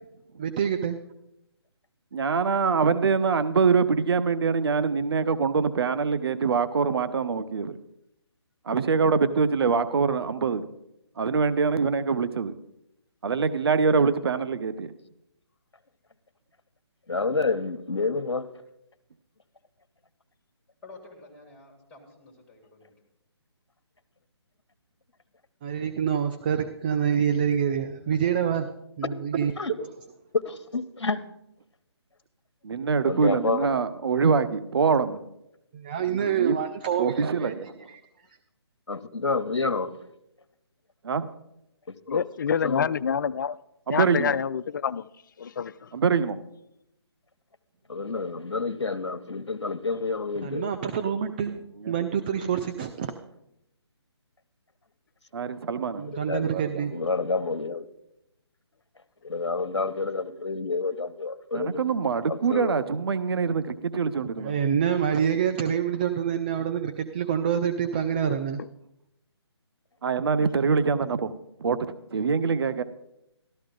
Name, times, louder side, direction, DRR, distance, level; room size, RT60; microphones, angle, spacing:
voice 1, 0.4-1.0 25.6-29.8 35.7-37.5 37.9-38.0 50.4-53.1 56.0-57.1 64.4-68.6, right 8 dB, 20° right, 0.4 m, -27 dB
voice 2, 2.1-7.8 8.7-10.6 11.2-12.5 13.2-14.9 32.6-35.2 36.3-36.6 37.0-37.7 41.0-41.3 43.9-44.3 45.9-46.4 55.3-56.0 61.5-64.6 70.0-71.3 71.6-72.8, right 5 dB, 60° right, 0.7 m, -24 dB
voice 3, 17.1-18.5 29.6-29.7 30.3-31.2 33.0-33.7 38.9-40.0 41.9-42.2 42.6-42.9 47.9-50.7 56.1-56.4 56.9-57.8 59.2-61.8 62.3-62.7, left 4 dB, 90° left, 0.9 m, -29 dB
voice 4, 20.8-22.9, left 2 dB, 5° left, 2.4 m, -49 dB
voice 5, 42.1-43.6 43.9-45.0 45.4-45.7, left 7 dB, 45° left, 0.4 m, -27 dB
13.5 x 12.5 x 3.8 m
figure-of-eight pair, 155°, 14 cm